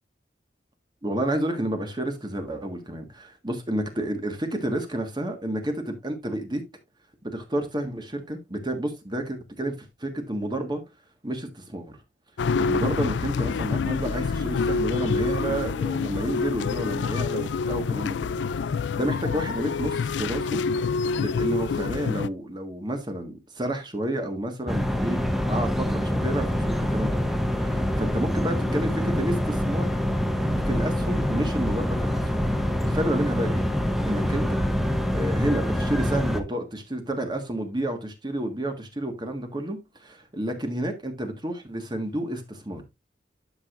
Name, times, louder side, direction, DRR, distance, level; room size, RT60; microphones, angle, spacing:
voice 1, 1.0-6.6 7.2-9.7 10.0-10.8 11.2-12.0 12.6-20.6 21.1-27.2 27.6-29.9 30.7-32.2 32.8-33.7 34.1-34.6 35.1-42.8, right 1 dB, 25° right, 1.6 m, -30 dB
sound 1, 12.4-22.3, left 5 dB, 75° left, 0.4 m, -27 dB
sound 2, 24.7-36.4, equal, ahead, 0.8 m, -25 dB
11.0 x 6.4 x 2.5 m
head